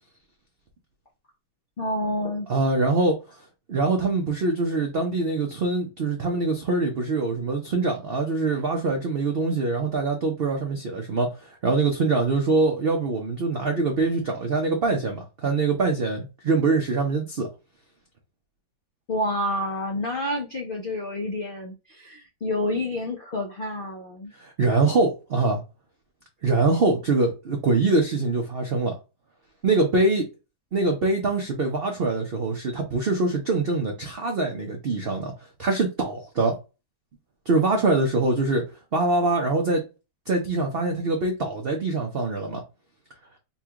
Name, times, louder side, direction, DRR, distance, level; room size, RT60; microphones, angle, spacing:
voice 1, 1.8-2.5 19.1-24.3, left 1 dB, 80° left, 0.4 m, -29 dB
voice 2, 2.5-3.2 3.7-17.5 24.4-25.6 26.4-29.0 29.6-30.3 30.7-35.3 35.6-36.6 37.5-38.6 38.9-39.8 40.3-42.6, right 3 dB, 80° right, 0.5 m, -24 dB
4.1 x 2.4 x 2.8 m
omnidirectional pair, 1.9 m